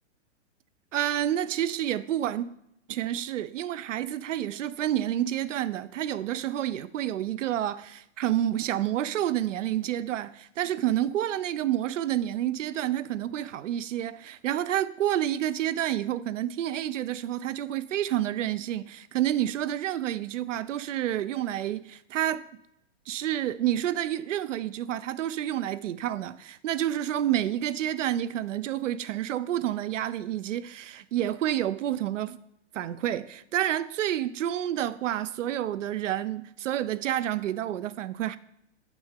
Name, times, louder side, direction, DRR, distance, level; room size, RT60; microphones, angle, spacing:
voice 1, 0.9-2.5 2.9-22.4 23.1-32.4 32.7-38.4, right 12 dB, 85° right, 0.5 m, -29 dB
6.5 x 6.0 x 3.6 m
hypercardioid pair, 140°, 36 cm